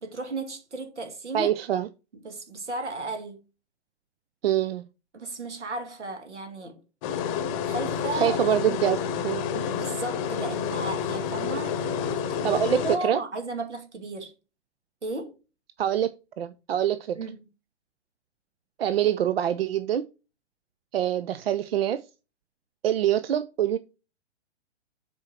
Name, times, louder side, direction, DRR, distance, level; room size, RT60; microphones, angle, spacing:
voice 1, 0.0-1.5 2.1-3.4 5.1-6.8 7.6-8.4 8.6-8.8 9.5-14.3 15.0-15.3 17.1-17.4, right 2 dB, 75° right, 2.4 m, -34 dB
voice 2, 1.3-1.9 4.4-4.8 8.1-9.0 9.2-9.4 12.4-13.2 15.8-16.1 16.4-17.2 18.8-20.0 20.9-22.0 22.8-23.8, right 10 dB, 55° right, 0.5 m, -25 dB
sound 1, 7.0-13.0, left 7 dB, 30° left, 0.9 m, -29 dB
7.5 x 4.6 x 4.3 m
figure-of-eight pair, 115°, 35 cm